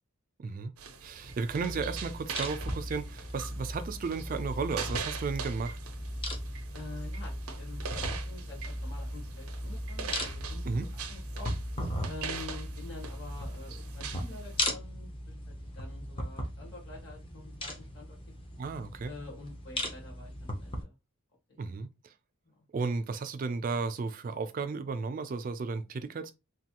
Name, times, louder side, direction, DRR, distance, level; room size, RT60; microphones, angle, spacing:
voice 1, 0.4-0.7 1.0-5.8 10.7-10.9 18.6-19.1 21.6-21.9 22.7-26.3, right 4 dB, 40° right, 0.3 m, -34 dB
sound 1, 0.8-14.6, right 6 dB, 90° right, 0.5 m, -43 dB
sound 2, 1.2-20.8, left 1 dB, 25° left, 0.5 m, -38 dB
voice 2, 6.7-11.5 12.1-18.2 19.0-20.9 21.5-21.6 22.4-22.6, left 3 dB, 55° left, 1.4 m, -47 dB
3.2 x 2.3 x 2.8 m
head